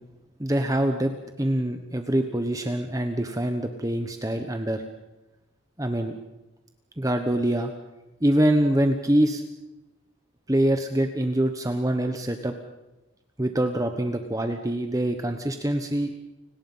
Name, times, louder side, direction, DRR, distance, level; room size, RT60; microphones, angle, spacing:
voice 1, 0.4-4.8 5.8-6.1 7.0-7.7 8.2-9.4 10.5-12.5 13.4-16.1, right 1 dB, 15° right, 6 dB, 1.1 m, -24 dB
29.5 x 18.5 x 5.6 m, 1.0 s
head